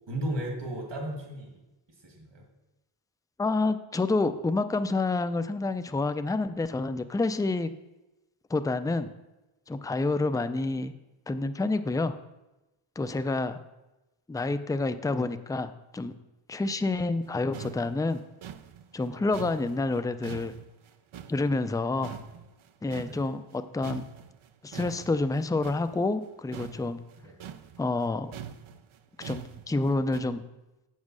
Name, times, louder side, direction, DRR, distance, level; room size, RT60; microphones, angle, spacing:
voice 1, 0.1-1.6 2.0-2.4 13.0-13.2 16.6-16.8 19.1-19.2 21.9-22.2 23.0-23.2 27.2-27.3, right 1 dB, 60° right, 1 dB, 2.3 m, -36 dB
voice 2, 3.4-7.7 8.5-9.1 9.7-10.9 11.3-12.2 13.0-13.6 14.3-16.1 16.5-18.2 18.9-20.5 21.3-22.1 22.8-24.1 24.6-27.0 27.8-28.3 29.2-30.4, left 3 dB, 10° left, 10 dB, 0.3 m, -28 dB
sound 1, 17.2-17.3 17.5-21.8 22.0-23.6 23.8-30.2, right 9 dB, 75° right, 0.7 m, -44 dB
7.5 x 7.2 x 6.2 m, 1.0 s
wide cardioid pair, 105°, 49 cm